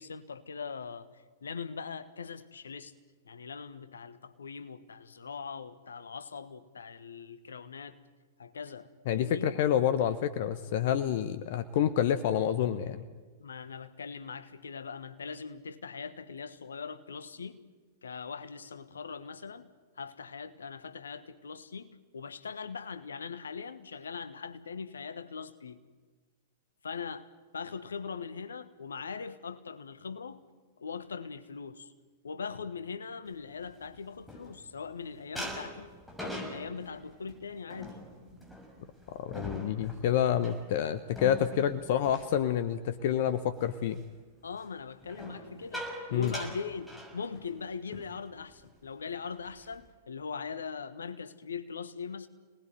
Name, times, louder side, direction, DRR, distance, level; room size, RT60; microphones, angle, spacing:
voice 1, 0.0-2.9 3.2-8.0 8.4-9.5 13.4-17.6 18.0-25.8 26.8-30.4 30.8-31.9 32.2-35.9 36.2-38.0 44.4-52.3, left 5 dB, 75° left, 1.4 m, -41 dB
voice 2, 9.1-13.1 39.1-44.0 46.1-46.3, left 10 dB, 50° left, 1.1 m, -28 dB
sound 1, 33.5-34.9 35.3-43.2 43.5-43.9 45.0-47.6 47.9-48.1 48.4-48.7 49.2-49.9, equal, ahead, 6.4 m, -43 dB
26.0 x 19.5 x 9.4 m
figure-of-eight pair, 100°, 0 cm